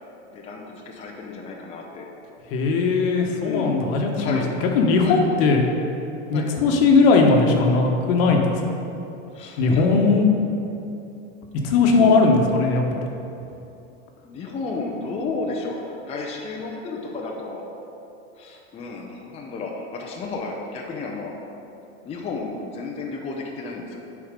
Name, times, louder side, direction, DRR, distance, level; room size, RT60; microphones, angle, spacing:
voice 1, 0.3-2.1 3.4-3.8 4.1-4.5 5.0-5.2 6.3-6.5 9.3-10.1 11.6-12.2 14.2-17.6 18.4-21.3 22.0-24.0, left 3 dB, 20° left, -1 dB, 0.6 m, -32 dB
voice 2, 2.5-4.4 4.7-5.6 6.3-8.6 9.6-10.3 11.6-13.1, left 4 dB, 55° left, 2 dB, 1.2 m, -18 dB
8.7 x 4.5 x 5.2 m, 2.8 s
supercardioid pair, 135°, 34 cm